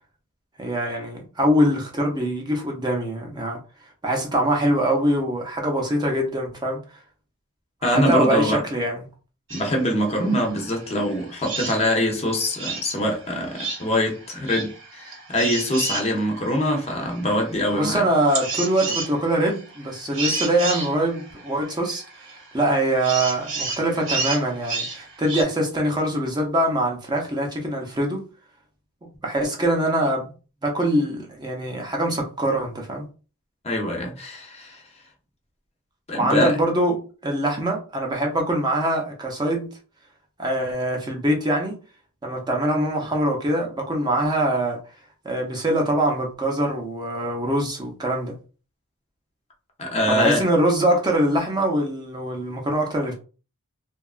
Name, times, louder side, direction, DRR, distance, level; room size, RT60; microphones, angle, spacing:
voice 1, 0.6-3.6 4.0-6.8 7.8-9.0 17.7-22.0 22.5-28.2 29.2-30.2 30.6-33.1 36.1-39.7 40.4-41.7 42.2-44.8 45.2-48.4 50.1-53.1, right 1 dB, 20° right, 0.5 m, -23 dB
voice 2, 7.8-8.6 9.5-18.0 33.6-34.8 36.1-36.6 49.8-50.4, equal, 30° left, 0.6 m, -23 dB
sound 1, 9.5-25.4, right 4 dB, 60° right, 0.8 m, -33 dB
2.8 x 2.3 x 2.3 m
head